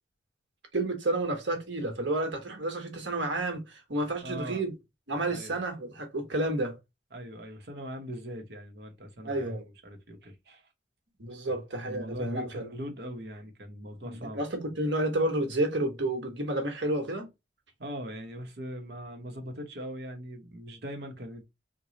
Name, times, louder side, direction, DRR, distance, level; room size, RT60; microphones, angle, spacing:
voice 1, 0.7-4.7 5.1-6.7 9.2-9.6 11.2-12.7 14.0-17.3, right 1 dB, 85° right, 1.2 m, -30 dB
voice 2, 4.2-4.6 5.3-5.6 7.1-10.7 11.9-14.4 17.8-21.4, equal, 60° right, 0.9 m, -41 dB
3.0 x 2.2 x 3.9 m
head